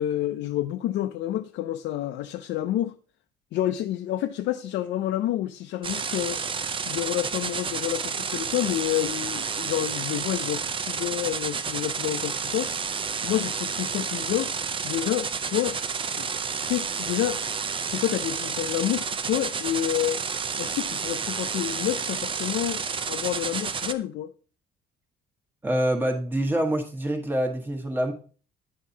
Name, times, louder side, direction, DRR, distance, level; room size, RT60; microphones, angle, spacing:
voice 1, 0.0-2.9 3.5-6.4 6.9-12.7 13.2-14.5 14.8-15.8 16.1-16.3 16.7-17.4 17.8-20.2 20.6-24.3, left 13 dB, 75° left, 0.5 m, -29 dB
sound 1, 5.8-23.9, right 5 dB, 25° right, 0.5 m, -30 dB
voice 2, 25.6-28.1, right 1 dB, 10° right, 1.2 m, -26 dB
9.4 x 7.2 x 2.8 m
cardioid pair, 150°, 19 cm